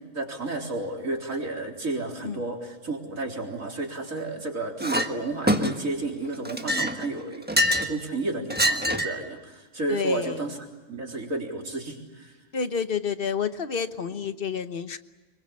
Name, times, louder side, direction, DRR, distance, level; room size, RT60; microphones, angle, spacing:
voice 1, 0.1-10.6 10.9-12.3, right 2 dB, 90° right, 1 dB, 4.2 m, -32 dB
Chink clink, 4.8-5.1 5.5-6.0 6.5-8.0 8.5-9.2, equal, 10° right, 1.3 m, -25 dB
voice 2, 9.9-10.4 12.5-15.0, left 6 dB, 45° left, 10 dB, 1.3 m, -29 dB
25.5 x 22.5 x 8.6 m, 1.2 s
omnidirectional pair, 1.4 m